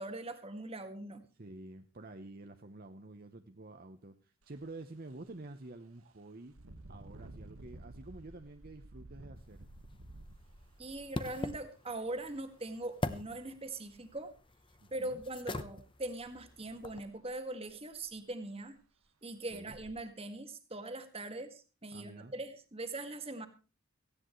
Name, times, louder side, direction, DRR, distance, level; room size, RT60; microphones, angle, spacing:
voice 1, 0.0-1.2 10.8-14.3 14.9-18.8 19.2-23.5, right 2 dB, 25° right, 7 dB, 1.8 m, -41 dB
voice 2, 1.4-6.5 6.9-9.7 14.8-15.2 19.5-19.8 21.9-22.3, right 2 dB, 45° right, 7 dB, 0.9 m, -49 dB
Engine, 4.4-4.6 5.1-5.3 6.5-12.3 13.1-13.3 13.7-14.4 16.2-16.3 16.7-16.8 17.3-17.4 17.7-18.2 18.8-18.9 19.5-19.9, right 1 dB, 80° right, 1.5 m, -53 dB
sound 1, 9.4-17.1, left 2 dB, 25° left, 0.9 m, -44 dB
18.0 x 15.5 x 3.2 m, 0.33 s
head